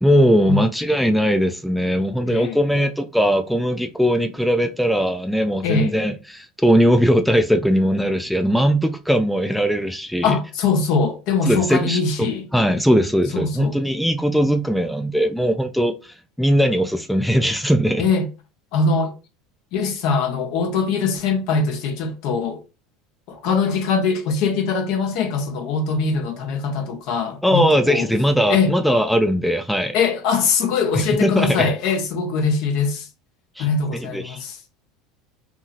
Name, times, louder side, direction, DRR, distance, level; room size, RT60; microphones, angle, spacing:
voice 1, 0.0-10.4 11.4-15.9 16.4-18.0 27.4-29.9 31.2-31.7 33.6-33.7 34.1-34.4, equal, ahead, 0.4 m, -19 dB
voice 2, 2.3-2.6 5.6-5.9 10.2-12.5 13.3-13.8 18.0-18.3 18.7-19.1 19.7-22.6 23.3-28.1 28.5-28.7 29.9-33.1 33.6-34.6, left 4 dB, 55° left, 0.7 m, -22 dB
2.7 x 2.7 x 2.3 m
figure-of-eight pair, 70°, 0 cm